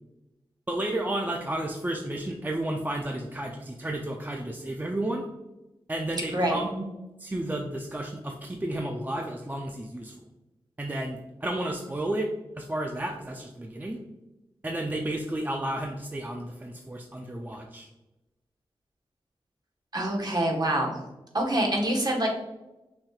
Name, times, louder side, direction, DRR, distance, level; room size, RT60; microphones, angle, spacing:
voice 1, 0.7-5.3 5.9-6.9 7.2-10.2 10.8-12.3 12.6-14.0 14.6-17.9, right 1 dB, 20° right, 1 dB, 0.5 m, -32 dB
voice 2, 19.9-21.0 21.3-22.3, right 1 dB, 45° right, -1 dB, 1.3 m, -25 dB
6.1 x 3.1 x 2.4 m, 1.0 s
cardioid pair, 50°, 10 cm